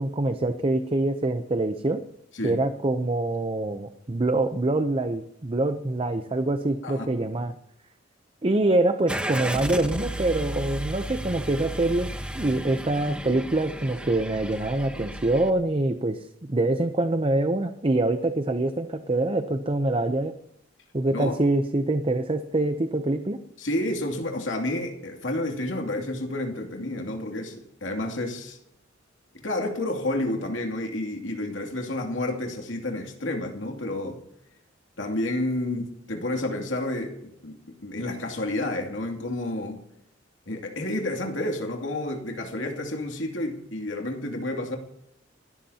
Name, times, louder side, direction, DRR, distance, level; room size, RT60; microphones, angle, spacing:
voice 1, 0.0-2.0 2.4-7.5 8.4-20.4 20.9-23.4, right 2 dB, 30° right, 0.7 m, -25 dB
Car / Engine starting, 9.1-15.5, right 1 dB, 5° right, 1.1 m, -34 dB
voice 2, 23.6-28.6 29.3-34.2 35.0-39.8 40.5-44.8, left 1 dB, 75° left, 2.7 m, -30 dB
28.0 x 13.5 x 2.9 m
head